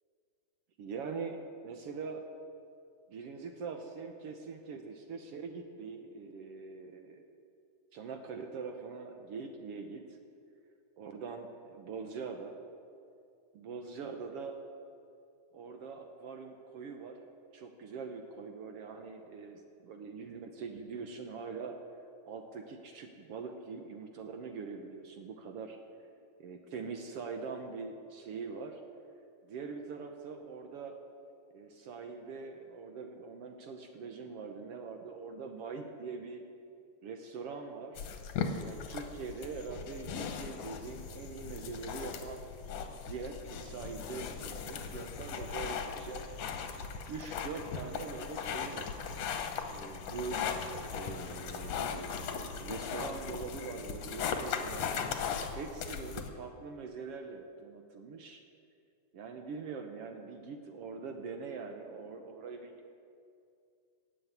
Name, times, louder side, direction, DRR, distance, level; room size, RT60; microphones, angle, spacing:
voice 1, 0.8-2.2 3.1-7.2 7.9-10.2 11.0-12.6 13.5-14.6 15.5-17.2 17.5-21.8 22.2-25.8 26.4-28.8 29.4-31.0 31.5-36.4 37.0-38.1 38.6-46.2 47.1-48.9 49.6-50.4 50.9-54.9 55.5-58.4 59.1-62.7, right 5 dB, 65° right, 5 dB, 1.6 m, -43 dB
sound 1, 38.0-56.3, left 6 dB, 65° left, 2.0 m, -38 dB
16.0 x 7.9 x 9.6 m, 2.4 s
omnidirectional pair, 3.6 m